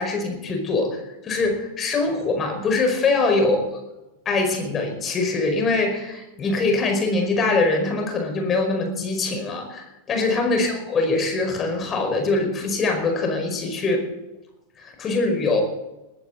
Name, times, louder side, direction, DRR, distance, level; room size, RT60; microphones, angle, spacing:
voice 1, 0.0-3.7 4.2-14.0 14.8-15.6, left 3 dB, 25° left, 4 dB, 5.1 m, -23 dB
20.0 x 15.5 x 4.1 m, 0.99 s
figure-of-eight pair, 90°, 0 cm